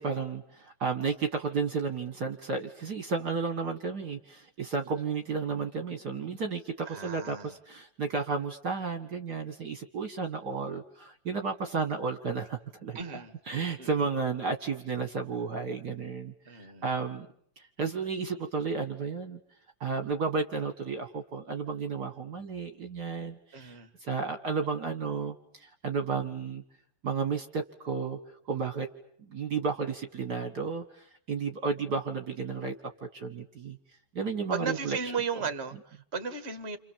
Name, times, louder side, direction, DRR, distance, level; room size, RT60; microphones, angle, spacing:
voice 1, 0.0-17.3 17.6-19.4 19.8-26.6 27.0-28.9 29.3-33.8 34.1-35.0 35.3-35.5, right 5 dB, 50° right, 7 dB, 2.1 m, -33 dB
voice 2, 6.9-7.5 12.9-13.3 13.8-13.9 16.5-16.8 23.5-23.9 34.5-36.8, right 5 dB, 30° right, 10 dB, 2.1 m, -35 dB
30.0 x 27.0 x 7.4 m, 0.65 s
omnidirectional pair, 2.4 m